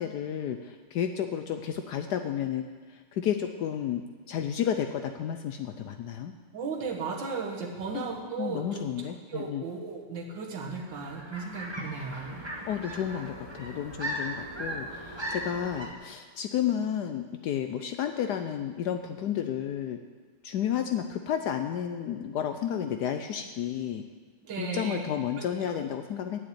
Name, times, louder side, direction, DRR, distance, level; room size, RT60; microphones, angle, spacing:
voice 1, 0.0-4.0 4.3-6.3 7.9-8.0 8.4-9.6 12.7-20.0 20.4-24.0 24.6-26.4, left 9 dB, 85° left, 7 dB, 0.9 m, -32 dB
voice 2, 6.5-8.9 9.3-12.4 24.4-25.0 25.4-25.9, right 4 dB, 60° right, -1 dB, 2.2 m, -36 dB
sound 1, 10.7-15.9, right 1 dB, 15° right, 1.3 m, -38 dB
9.3 x 7.7 x 8.5 m, 1.4 s
omnidirectional pair, 2.4 m